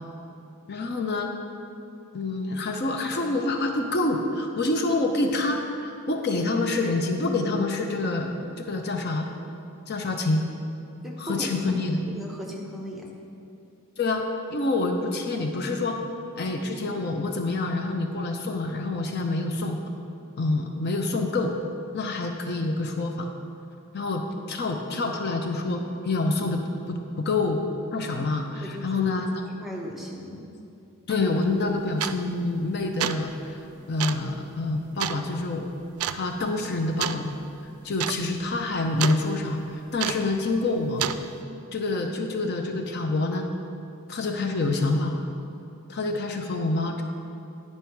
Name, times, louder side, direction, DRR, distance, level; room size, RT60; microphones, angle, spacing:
voice 1, 0.7-1.3 2.1-9.3 9.9-10.4 11.2-12.1 14.0-14.2 14.5-16.0 16.4-19.8 20.4-21.5 21.9-23.3 23.9-26.6 26.9-27.6 27.9-29.3 31.1-33.6 33.9-35.7 36.1-37.4 37.8-41.0 41.7-43.5 44.1-45.2 45.9-47.0, left 2 dB, 50° left, 4 dB, 0.6 m, -27 dB
voice 2, 11.0-11.5 12.1-13.1 28.6-29.1 29.6-30.4, equal, ahead, -2 dB, 0.8 m, -37 dB
sound 1, 31.1-31.2 32.0-32.4 32.8-33.3 34.0-34.3 35.0-35.2 36.0-36.2 37.0-37.2 37.5-37.6 37.9-38.2 38.5-39.2 40.0-40.3 41.0-41.2, right 10 dB, 85° right, 0.3 m, -29 dB
9.9 x 5.4 x 4.6 m, 2.7 s
head